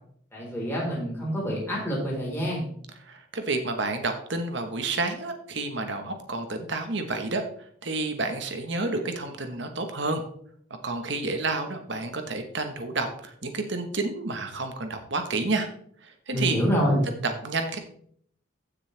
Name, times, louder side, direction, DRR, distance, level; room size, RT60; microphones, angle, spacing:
voice 1, 0.3-2.7 16.3-17.1, equal, 10° left, -5 dB, 4.3 m, -26 dB
voice 2, 3.1-7.4 7.8-10.2 10.8-15.7 16.3-16.6 17.2-17.8, right 3 dB, 60° right, 6 dB, 1.3 m, -30 dB
15.0 x 6.6 x 3.4 m, 0.63 s
head